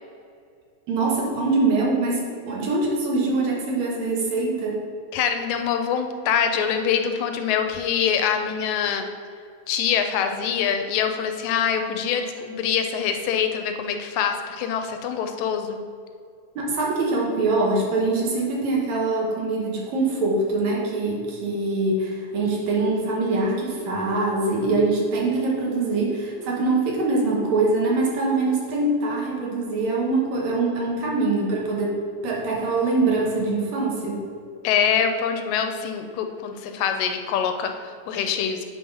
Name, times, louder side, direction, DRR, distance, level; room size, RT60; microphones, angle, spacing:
voice 1, 0.9-4.8 16.6-34.2, right 3 dB, 70° right, -2 dB, 2.5 m, -23 dB
voice 2, 5.1-9.1 9.7-15.8 34.6-38.7, left 7 dB, 80° left, 6 dB, 1.9 m, -24 dB
8.5 x 4.0 x 5.4 m, 2.3 s
omnidirectional pair, 3.4 m